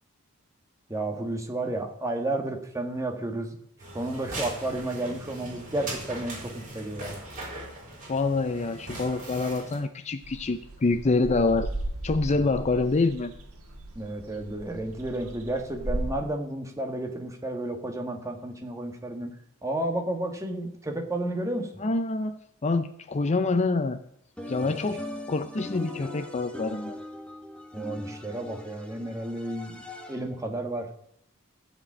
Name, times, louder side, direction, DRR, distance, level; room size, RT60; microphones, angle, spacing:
voice 1, 0.9-3.5 3.9-7.2 13.9-19.3 19.6-21.7 24.6-24.8 27.7-29.8 30.1-30.9, right 1 dB, 15° right, 3 dB, 1.5 m, -32 dB
sound 1, 3.8-9.8, right 2 dB, 40° right, 4.8 m, -40 dB
voice 2, 8.1-11.7 12.0-13.3 21.8-24.0 24.5-25.0 25.3-27.0, left 3 dB, 30° left, 10 dB, 0.5 m, -26 dB
sound 2, 10.2-16.1, right 1 dB, 75° right, 1.9 m, -36 dB
sound 3, 24.4-30.4, left 1 dB, 5° left, 1.2 m, -40 dB
15.5 x 5.2 x 8.4 m, 0.73 s
head